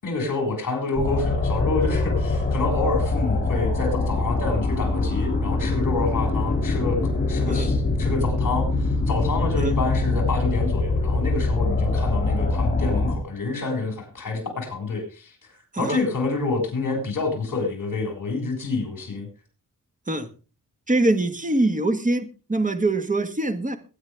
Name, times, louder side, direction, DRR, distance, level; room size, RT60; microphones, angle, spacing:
voice 1, 0.0-7.0 7.3-15.3 15.8-19.3, left 3 dB, 65° left, 3 dB, 6.1 m, -27 dB
sound 1, 1.0-13.1, left 3 dB, 30° left, 7.5 m, -23 dB
voice 2, 20.9-23.8, right 2 dB, 20° right, 8 dB, 1.7 m, -23 dB
21.5 x 9.7 x 3.5 m, 0.34 s
wide cardioid pair, 120°, 34 cm